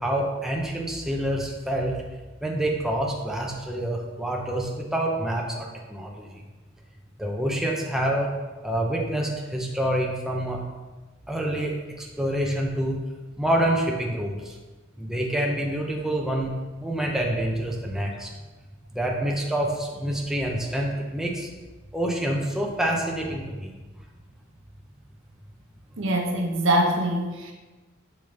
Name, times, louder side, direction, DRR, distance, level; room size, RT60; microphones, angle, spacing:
voice 1, 0.0-1.9 2.4-6.3 7.2-8.3 8.6-10.6 11.3-13.0 13.4-14.6 15.0-16.5 16.8-18.3 18.9-21.5 21.9-23.7, right 1 dB, ahead, -1 dB, 0.6 m, -27 dB
voice 2, 26.0-27.5, right 1 dB, 65° right, 2 dB, 1.0 m, -23 dB
6.9 x 5.6 x 3.3 m, 1.2 s
head